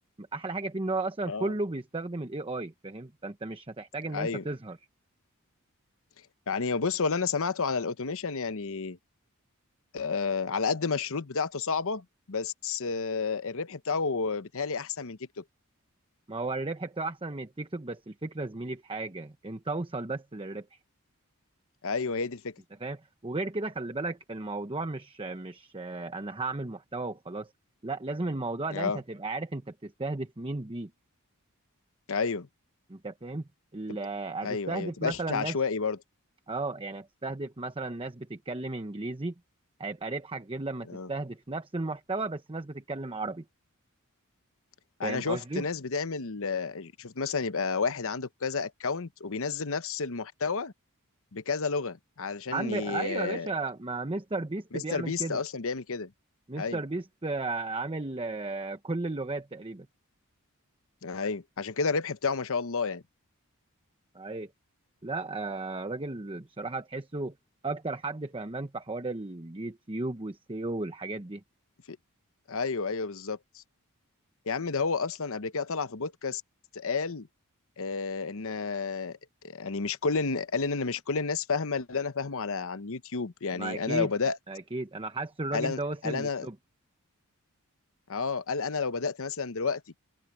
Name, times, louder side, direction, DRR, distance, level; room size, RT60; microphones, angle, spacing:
voice 1, 0.2-4.8 16.3-20.7 22.8-27.5 27.8-30.9 32.9-35.5 36.5-39.3 39.8-43.4 45.0-45.6 52.5-55.4 56.5-59.9 64.1-64.5 65.0-67.3 67.6-71.4 83.5-84.1 84.5-86.5, right 2 dB, 25° right, 1.0 m, -34 dB
voice 2, 4.1-4.4 6.5-9.0 9.9-15.4 21.8-22.5 28.7-29.0 32.1-32.5 33.9-34.0 34.4-36.0 40.9-41.1 45.0-50.7 51.3-53.5 54.7-56.1 56.6-56.8 61.0-63.0 71.9-72.0 72.5-73.6 74.5-76.4 76.7-77.3 77.8-79.2 79.4-84.4 85.5-86.5 88.1-89.8, left 4 dB, 65° left, 1.0 m, -31 dB
head